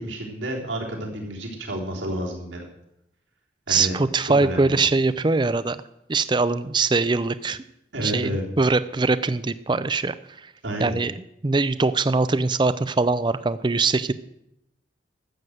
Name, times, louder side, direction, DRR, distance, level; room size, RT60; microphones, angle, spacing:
voice 1, 0.0-2.7 3.7-3.9 4.4-4.8 7.9-8.4 10.6-11.0, right 1 dB, 85° right, -1 dB, 3.5 m, -30 dB
voice 2, 3.7-5.8 6.1-7.6 8.0-8.3 8.6-10.5 10.8-11.1 11.4-14.1, right 3 dB, 25° right, 14 dB, 0.4 m, -22 dB
13.0 x 7.8 x 7.9 m, 0.83 s
head